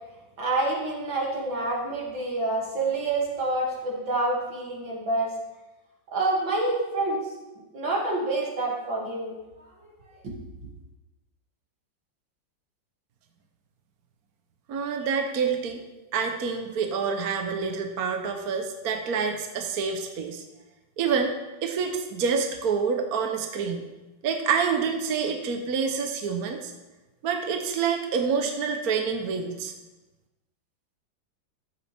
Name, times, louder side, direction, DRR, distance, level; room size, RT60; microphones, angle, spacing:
voice 1, 0.4-5.3 6.1-7.2 7.7-9.3 10.2-10.3, right 2 dB, 80° right, -3 dB, 3.2 m, -27 dB
voice 2, 14.7-15.8 16.1-20.4 21.0-21.3 21.6-23.8 24.2-26.7 27.2-29.7, right 6 dB, 55° right, 4 dB, 1.3 m, -27 dB
14.0 x 8.7 x 3.5 m, 1.1 s
omnidirectional pair, 2.1 m